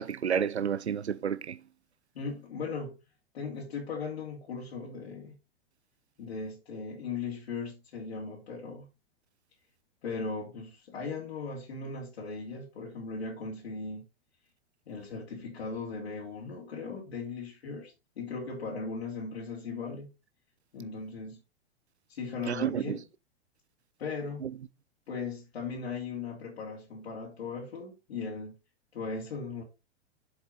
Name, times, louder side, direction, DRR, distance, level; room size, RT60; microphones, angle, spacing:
voice 1, 0.0-1.6 22.5-23.0 24.4-24.5, right 8 dB, 90° right, 0.6 m, -30 dB
voice 2, 2.2-2.9 3.3-5.4 6.2-8.9 10.0-14.0 14.9-20.1 20.7-21.4 22.1-23.1 24.0-24.4 25.1-28.6 28.9-29.6, left 4 dB, 70° left, 3.4 m, -38 dB
7.7 x 7.3 x 4.3 m
hypercardioid pair, 105°, 32 cm